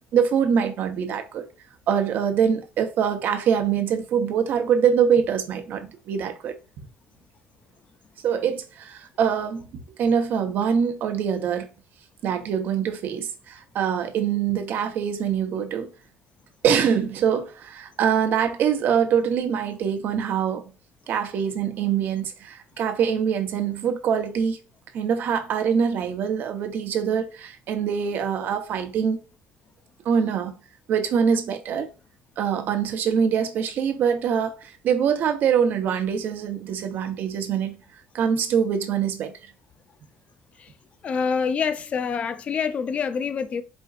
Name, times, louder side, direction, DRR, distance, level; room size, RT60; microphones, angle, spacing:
voice 1, 0.1-1.4 1.9-6.5 8.2-11.7 12.2-15.9 16.6-20.6 21.1-24.6 24.9-29.2 30.0-30.6 30.9-31.9 32.4-37.8 38.1-39.3, right 7 dB, 60° right, 0.8 m, -24 dB
voice 2, 41.0-43.6, left 6 dB, 35° left, 0.4 m, -26 dB
4.3 x 3.6 x 2.4 m
cardioid pair, 140°, 4 cm